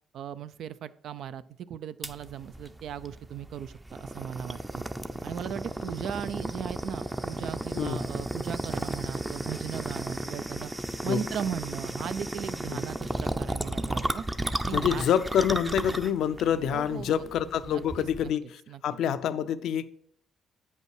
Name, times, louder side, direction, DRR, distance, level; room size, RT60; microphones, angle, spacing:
voice 1, 0.1-1.4 1.7-4.8 5.2-10.7 11.0-14.3 14.6-15.1 16.7-17.3 17.6-18.3 18.7-18.8, right 9 dB, 75° right, 0.4 m, -37 dB
sound 1, 2.0-18.3, right 1 dB, 15° right, 0.6 m, -34 dB
voice 2, 14.7-19.9, left 9 dB, 80° left, 0.5 m, -27 dB
8.6 x 5.4 x 4.7 m
cardioid pair, 90°, 0 cm